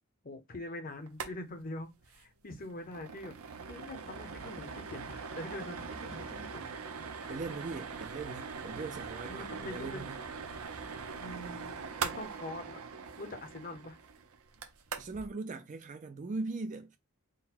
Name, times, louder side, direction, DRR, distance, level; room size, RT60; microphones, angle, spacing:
voice 1, 0.2-3.4 3.7-6.6 9.3-10.1 11.2-12.8 13.2-14.0, left 2 dB, 40° left, 0.8 m, -44 dB
sound 1, 1.1-1.3 1.6-1.7 2.0-2.2 2.6-15.3, right 5 dB, 75° right, 0.7 m, -42 dB
sound 2, 7.2-12.4, left 1 dB, 85° left, 1.1 m, -59 dB
voice 2, 7.3-10.2 15.0-17.0, right 3 dB, 35° right, 0.4 m, -40 dB
3.9 x 2.2 x 4.1 m
head